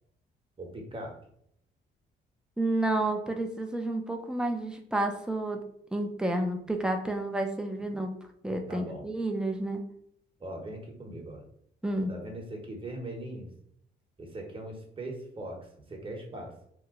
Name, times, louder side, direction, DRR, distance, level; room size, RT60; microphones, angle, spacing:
voice 1, 0.6-1.1 7.9-8.0 8.7-9.1 10.4-11.4 12.1-13.5 14.2-16.5, right 1 dB, 25° right, 0 dB, 1.0 m, -40 dB
voice 2, 2.6-5.6 5.9-8.1 8.4-9.8 11.8-12.1, right 1 dB, 5° right, 4 dB, 0.5 m, -30 dB
3.0 x 2.1 x 3.6 m, 0.71 s
cardioid pair, 90°, 20 cm